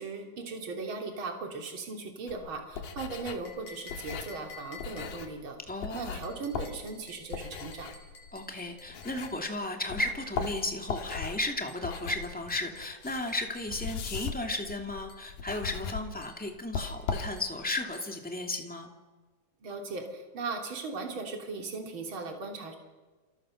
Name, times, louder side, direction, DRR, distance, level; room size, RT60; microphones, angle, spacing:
voice 1, 0.0-5.6 5.9-7.9 19.6-22.8, right 4 dB, 40° right, 3 dB, 3.7 m, -38 dB
sound 1, 2.3-9.6 9.9-17.7, left 6 dB, 85° left, 3.6 m, -39 dB
sound 2, 3.5-5.4 6.2-9.5 10.6-14.0 15.1-15.3 15.6-15.9 16.2-16.5 16.8-17.1 17.4-17.6 17.9-18.2 18.5-18.8, left 5 dB, 60° left, 5.4 m, -52 dB
voice 2, 5.7-6.2 8.3-18.9, left 2 dB, 5° left, 3 dB, 1.9 m, -34 dB
28.5 x 28.0 x 6.5 m, 1.3 s
omnidirectional pair, 3.8 m